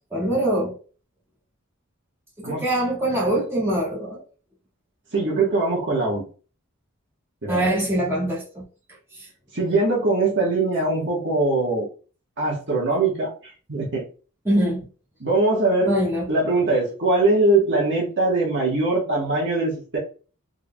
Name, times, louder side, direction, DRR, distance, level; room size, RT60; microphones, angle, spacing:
voice 1, 0.1-0.8 2.4-4.2 7.5-8.6 14.4-14.8 15.9-16.3, right 1 dB, 10° right, 1.7 m, -23 dB
voice 2, 5.1-6.2 7.4-7.7 9.5-11.9 12.4-14.0 15.2-16.0 16.3-20.0, right 2 dB, 55° right, 1.3 m, -22 dB
3.7 x 3.4 x 2.2 m
head